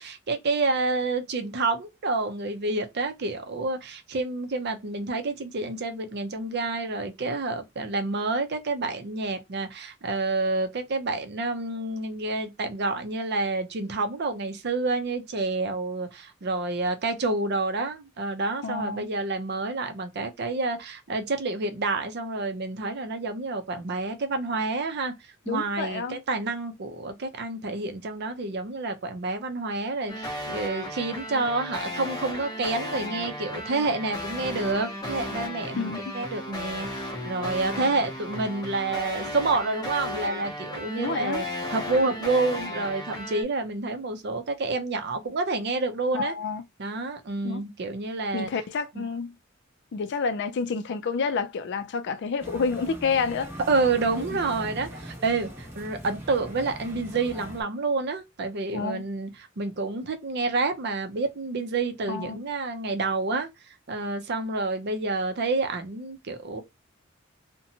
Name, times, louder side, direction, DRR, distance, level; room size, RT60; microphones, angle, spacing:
voice 1, 0.0-25.1 25.5-46.3 46.8-48.5 53.7-59.3 59.6-63.5 63.9-66.6, right 3 dB, 55° right, 0.5 m, -28 dB
voice 2, 18.6-19.1 25.5-26.2 35.8-36.0 41.0-41.4 46.1-46.6 47.4-47.6 48.3-49.3 49.9-53.5 58.7-59.0 62.1-62.4, left 5 dB, 60° left, 0.4 m, -29 dB
sound 1, 30.1-43.4, left 1 dB, 20° left, 0.7 m, -35 dB
sound 2, 52.4-57.6, equal, 10° right, 0.9 m, -40 dB
2.8 x 2.2 x 2.7 m
head